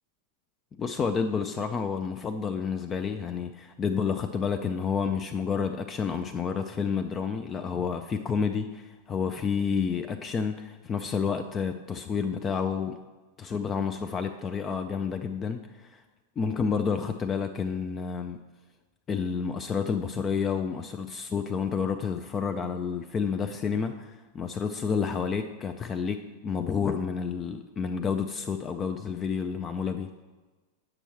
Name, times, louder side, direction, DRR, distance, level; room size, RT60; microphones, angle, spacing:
voice 1, 0.8-13.0 13.4-16.0 16.4-18.4 19.1-30.1, left 6 dB, 25° left, 7 dB, 0.3 m, -30 dB
8.7 x 6.1 x 3.1 m, 1.2 s
figure-of-eight pair, 90°, 0 cm